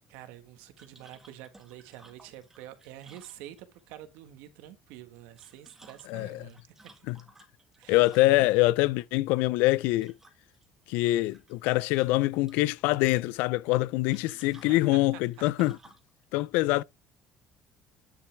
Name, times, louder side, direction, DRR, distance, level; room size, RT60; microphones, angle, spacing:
voice 1, 0.0-7.1 7.8-8.1 8.4-8.5 14.7-14.8, right 13 dB, 90° right, 1.5 m, -48 dB
sound 1, 0.8-3.9 5.2-8.6 9.9-10.7 11.0-11.7 12.0-12.8 14.1-16.1, right 2 dB, 15° right, 1.9 m, -57 dB
voice 2, 6.1-6.4 7.1-7.2 7.9-10.2 10.9-15.8 16.3-16.8, left 19 dB, 85° left, 0.4 m, -24 dB
9.6 x 5.7 x 3.4 m
cardioid pair, 110°, 3 cm